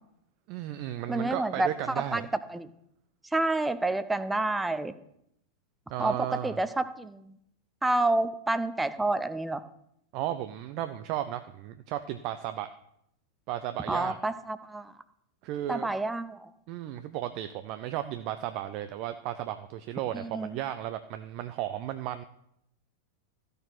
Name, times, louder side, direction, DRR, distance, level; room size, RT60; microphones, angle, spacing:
voice 1, 0.5-2.3 5.9-6.6 10.1-12.7 13.5-14.2 15.4-15.9 16.7-22.2, right 12 dB, 45° right, 10 dB, 0.6 m, -34 dB
voice 2, 1.1-2.2 2.5-2.7 3.3-4.9 6.0-7.4 7.8-9.6 13.9-14.9 15.7-16.5 20.1-20.6, right 2 dB, 10° right, 13 dB, 0.7 m, -29 dB
13.5 x 6.6 x 5.9 m, 0.75 s
figure-of-eight pair, 90°, 0 cm